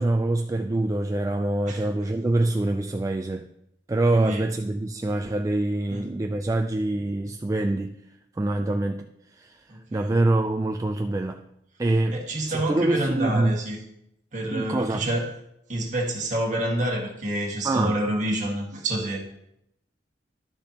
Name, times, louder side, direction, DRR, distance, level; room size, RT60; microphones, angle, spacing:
voice 1, 0.0-3.5 3.9-7.9 8.4-9.6 9.9-11.5 11.8-12.2 12.5-13.6 14.5-15.1 17.6-18.0, right 2 dB, 20° right, 4 dB, 0.3 m, -25 dB
voice 2, 4.1-4.5 5.9-6.1 9.7-10.1 12.1-13.8 14.3-15.3 15.7-19.3, right 1 dB, 45° right, -2 dB, 1.8 m, -28 dB
11.5 x 6.7 x 2.9 m, 0.80 s
head